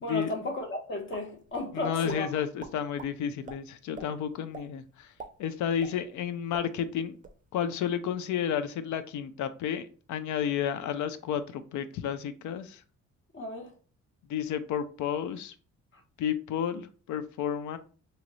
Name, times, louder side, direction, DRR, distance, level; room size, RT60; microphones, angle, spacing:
voice 1, 0.0-2.3 13.3-13.7, left 2 dB, 40° left, 1.1 m, -34 dB
sound 1, 1.1-1.7 2.1-2.2 2.6-3.1 3.5-3.6 3.9-4.1 4.5-4.7 5.0-6.3 6.5-6.7 7.0-7.4, right 5 dB, 25° right, 0.5 m, -44 dB
voice 2, 1.7-5.1 5.4-7.2 7.5-12.8 14.3-15.5 16.2-17.8, left 8 dB, 75° left, 0.5 m, -31 dB
2.8 x 2.4 x 3.1 m
cardioid pair, 90°, 30 cm